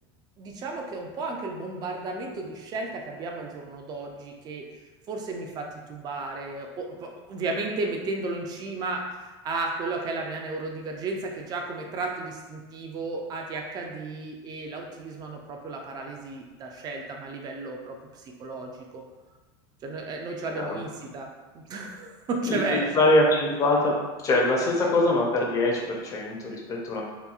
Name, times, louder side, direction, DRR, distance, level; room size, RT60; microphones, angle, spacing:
voice 1, 0.4-4.6 5.1-19.0 19.8-23.1, right 3 dB, 30° right, 2 dB, 0.4 m, -34 dB
voice 2, 22.4-24.0 24.2-27.0, left 2 dB, 25° left, -2 dB, 0.5 m, -23 dB
2.9 x 2.3 x 2.3 m, 1.2 s
supercardioid pair, 135°, 14 cm